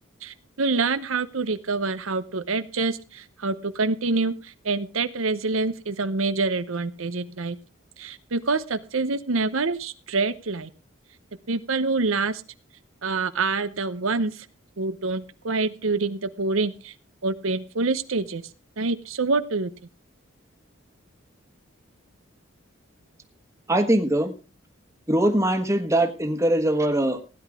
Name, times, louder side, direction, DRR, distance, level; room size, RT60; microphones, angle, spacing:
voice 1, 0.2-7.6 8.0-10.7 11.5-12.4 13.0-14.5 14.8-16.9 17.2-18.4 18.8-19.7, right 3 dB, 85° right, 12 dB, 0.9 m, -26 dB
voice 2, 23.7-24.3 25.1-27.2, right 1 dB, 15° right, 6 dB, 1.4 m, -22 dB
16.5 x 10.5 x 3.6 m, 0.33 s
head